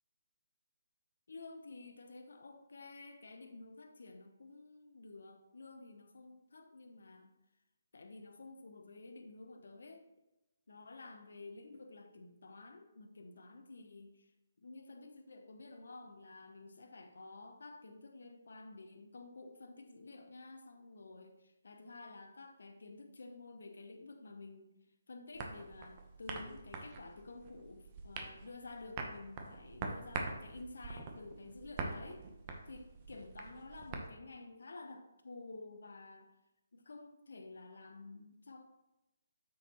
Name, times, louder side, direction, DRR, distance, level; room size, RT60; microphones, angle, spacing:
voice 1, 1.3-7.3 7.9-10.1 10.7-14.3 14.6-24.8 25.1-32.3 32.6-36.3 36.7-38.6, left 3 dB, 70° left, 5 dB, 0.8 m, -51 dB
sound 1, 25.3-34.1, right 4 dB, 30° right, 1.0 m, -45 dB
8.1 x 6.3 x 3.0 m, 0.95 s
figure-of-eight pair, 145°, 0 cm